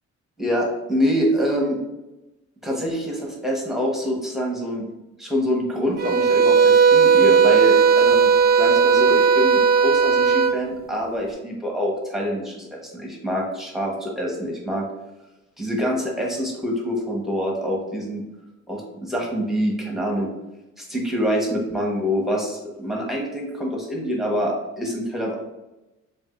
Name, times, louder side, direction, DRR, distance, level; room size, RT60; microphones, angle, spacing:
voice 1, 0.4-1.8 2.6-4.8 5.2-8.3 8.6-14.8 15.6-18.2 18.7-20.3 20.8-25.4, equal, ahead, -2 dB, 1.3 m, -25 dB
sound 1, 6.0-10.6, right 6 dB, 30° right, 0.5 m, -16 dB
7.0 x 2.7 x 2.6 m, 1.0 s
cardioid pair, 90°, 30 cm